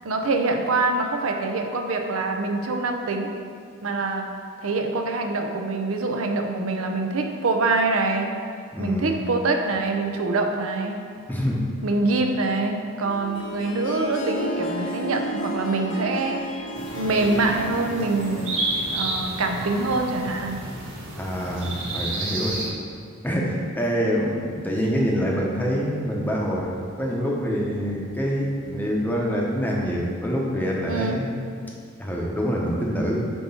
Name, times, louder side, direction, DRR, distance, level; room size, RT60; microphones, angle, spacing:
voice 1, 0.0-3.3 3.8-4.3 4.6-8.3 8.8-11.0 11.8-16.7 16.9-18.6 18.9-20.6 30.9-31.2, right 3 dB, 85° right, 3 dB, 0.6 m, -25 dB
voice 2, 8.7-9.2 11.3-11.6 21.2-22.6 23.2-26.7 27.0-31.3 32.0-33.3, equal, 10° left, -3 dB, 0.8 m, -25 dB
Harp, 13.0-19.5, equal, 65° left, 0.9 m, -33 dB
sound 1, 16.7-22.7, right 2 dB, 65° right, 1.3 m, -31 dB
7.9 x 2.9 x 5.6 m, 2.2 s
head